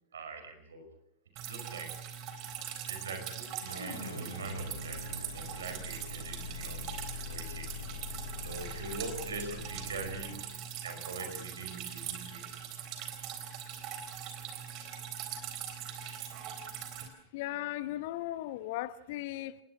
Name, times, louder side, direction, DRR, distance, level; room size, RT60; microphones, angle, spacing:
voice 1, 0.1-0.9 1.3-1.9 2.8-7.7 8.4-12.6 15.7-15.8, right 3 dB, 70° right, 6 dB, 5.4 m, -43 dB
Drip, 1.4-17.1, right 9 dB, 40° right, 3.9 m, -42 dB
sound 1, 3.7-10.4, left 3 dB, 90° left, 4.4 m, -43 dB
voice 2, 17.3-19.6, left 15 dB, 50° left, 16 dB, 1.0 m, -37 dB
29.5 x 19.5 x 5.8 m, 0.71 s
figure-of-eight pair, 90°, 0 cm